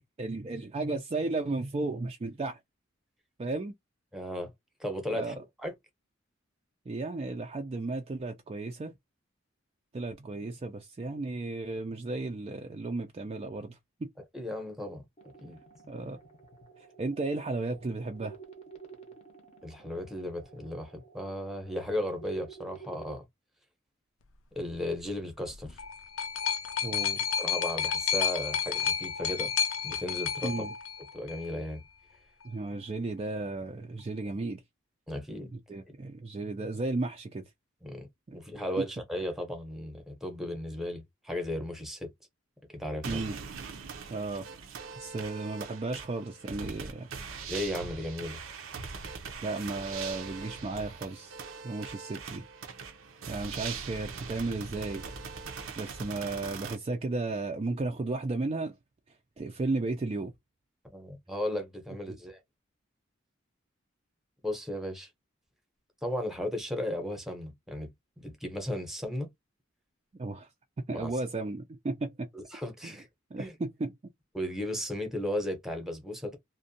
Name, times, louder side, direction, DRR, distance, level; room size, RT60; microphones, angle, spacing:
voice 1, 0.2-2.6 3.4-3.7 5.1-5.3 6.9-8.9 9.9-14.1 15.9-16.2 17.0-18.4 26.8-27.2 30.4-30.7 32.4-34.6 35.5-37.4 38.3-38.4 38.8-38.9 43.0-43.4 44.1-44.5 45.0-47.1 49.4-51.4 51.6-52.4 53.3-55.0 55.8-58.7 59.4-60.3 62.1-62.2 70.2-70.5 70.9-72.3 72.8-73.0 73.3-73.9, right 3 dB, 30° right, 0.4 m, -34 dB
voice 2, 4.1-4.5 4.8-5.7 14.3-15.0 15.4-15.6 19.6-23.2 24.6-25.8 27.4-29.5 29.8-30.6 31.1-31.8 35.1-35.5 37.8-42.1 42.7-43.2 47.5-48.4 60.8-62.4 64.4-65.1 66.0-67.9 68.2-69.3 70.9-71.1 72.3-73.1 73.4-73.5 74.3-76.4, left 1 dB, ahead, 0.7 m, -35 dB
sound 1, 15.2-23.2, right 5 dB, 30° left, 0.6 m, -51 dB
sound 2, 25.5-31.5 32.4-32.5, left 7 dB, 80° left, 0.4 m, -31 dB
sound 3, 43.0-56.8, right 5 dB, 75° right, 0.6 m, -41 dB
2.5 x 2.2 x 2.6 m
head